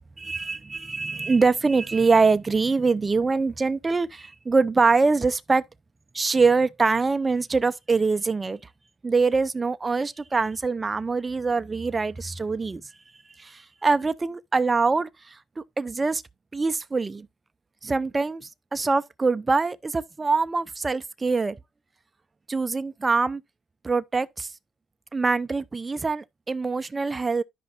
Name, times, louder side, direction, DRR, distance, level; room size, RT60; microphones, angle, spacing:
voice 1, 0.2-5.6 6.1-8.6 9.0-12.8 13.4-16.2 16.5-17.3 17.8-21.6 22.5-23.4 23.8-24.5 25.1-27.4, right 4 dB, 25° right, 0.6 m, -24 dB
12.5 x 5.3 x 2.4 m
cardioid pair, 90°, 0 cm